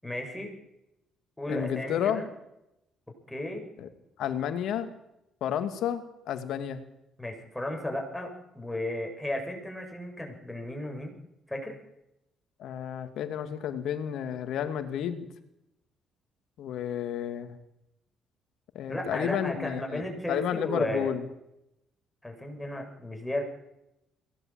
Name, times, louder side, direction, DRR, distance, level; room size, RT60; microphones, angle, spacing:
voice 1, 0.0-0.5 1.4-2.3 3.3-3.7 7.2-11.2 11.5-11.8 18.9-21.1 22.2-23.4, left 1 dB, 10° left, 2 dB, 7.4 m, -34 dB
voice 2, 1.5-2.2 3.8-3.9 4.2-4.9 5.4-6.8 12.6-15.3 16.6-17.6 18.7-21.2, left 9 dB, 65° left, 9 dB, 2.4 m, -31 dB
22.5 x 18.0 x 7.8 m, 0.87 s
hypercardioid pair, 55°, 0 cm